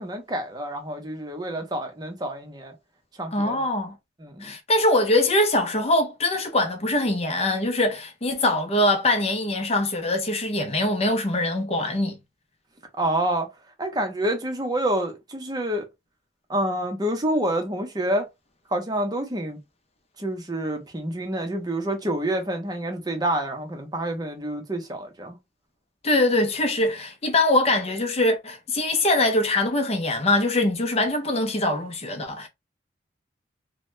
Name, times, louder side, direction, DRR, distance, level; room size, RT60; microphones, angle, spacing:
voice 1, 0.0-2.7 3.2-3.6 4.2-4.5 13.0-13.5 13.8-15.8 16.5-18.3 18.7-19.6 20.2-25.4, right 1 dB, 20° right, 0.6 m, -28 dB
voice 2, 3.3-3.9 4.4-12.2 26.0-32.5, left 1 dB, 30° left, 0.6 m, -23 dB
2.7 x 2.1 x 3.1 m
head